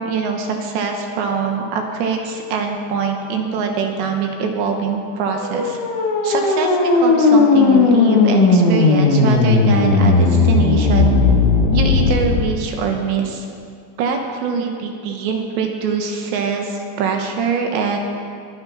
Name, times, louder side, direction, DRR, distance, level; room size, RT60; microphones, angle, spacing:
voice 1, 0.0-5.8 6.2-11.2 11.7-13.5 14.0-18.0, right 5 dB, 75° right, 3 dB, 3.2 m, -23 dB
sound 1, 5.3-12.4, left 4 dB, 80° left, 4.0 m, -15 dB
22.0 x 8.8 x 5.3 m, 2.2 s
omnidirectional pair, 5.3 m